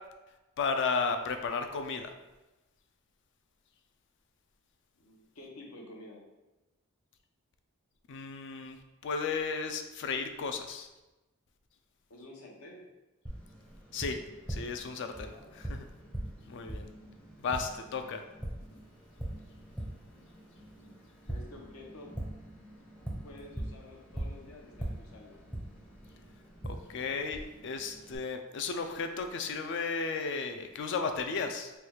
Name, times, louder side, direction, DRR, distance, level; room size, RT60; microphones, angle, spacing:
voice 1, 0.6-2.1 8.1-10.9 13.9-14.2 14.5-15.9 16.5-16.9 17.4-18.2 26.6-31.7, left 5 dB, 55° left, 6 dB, 0.4 m, -34 dB
voice 2, 4.9-6.2 12.1-12.9 15.3-15.6 21.3-22.1 23.2-25.4, left 1 dB, 75° left, 0 dB, 0.8 m, -50 dB
Tap, 13.3-28.2, right 1 dB, 5° left, 0.5 m, -42 dB
3.2 x 2.3 x 4.4 m, 1.0 s
head